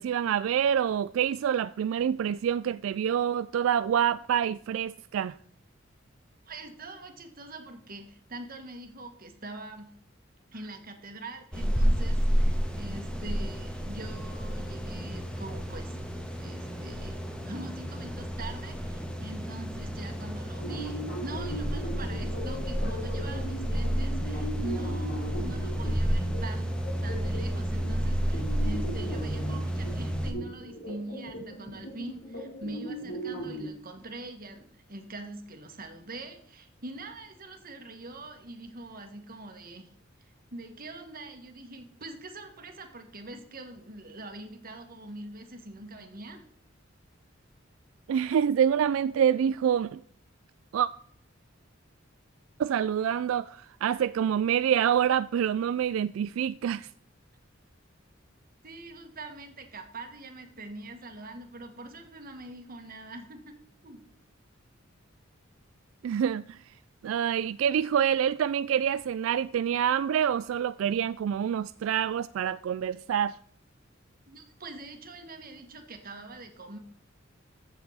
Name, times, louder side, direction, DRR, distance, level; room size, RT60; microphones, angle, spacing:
voice 1, 0.0-5.4 48.1-50.0 50.7-50.9 52.6-56.9 66.0-66.6 67.0-73.4, right 9 dB, 85° right, 0.3 m, -26 dB
voice 2, 6.5-9.9 10.5-16.1 16.4-26.8 27.0-39.9 40.2-46.4 58.6-63.6 63.8-64.1 74.3-76.8, right 2 dB, 50° right, 1.8 m, -43 dB
sound 1, 11.5-30.3, equal, 5° left, 1.4 m, -31 dB
sound 2, 20.6-33.7, equal, 70° left, 3.8 m, -39 dB
15.0 x 6.9 x 4.1 m
head